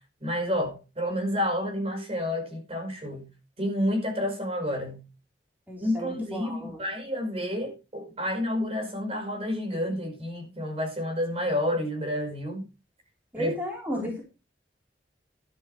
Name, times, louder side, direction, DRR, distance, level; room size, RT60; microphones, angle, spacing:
voice 1, 0.2-3.3 3.6-5.0 5.8-12.6 13.4-13.5 13.9-14.1, left 1 dB, 35° right, 4 dB, 5.4 m, -30 dB
voice 2, 5.7-6.8 13.3-14.2, left 1 dB, 10° right, -1 dB, 4.1 m, -34 dB
12.0 x 11.5 x 3.3 m, 0.28 s
head